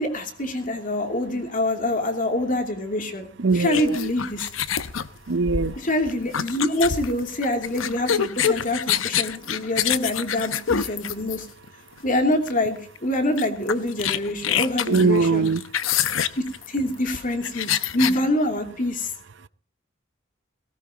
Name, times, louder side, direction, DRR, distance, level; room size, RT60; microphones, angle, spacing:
voice 1, 0.0-3.3 3.5-4.5 5.8-11.5 12.0-15.5 16.4-19.1, left 1 dB, 45° left, 2.8 m, -25 dB
voice 2, 3.4-4.1 5.3-5.7 14.9-15.6, right 4 dB, 65° right, 0.7 m, -21 dB
sound 1, 3.6-11.7 12.5-12.7 13.0-13.1 13.4-18.2, left 8 dB, 85° left, 0.8 m, -26 dB
19.0 x 17.0 x 2.9 m
head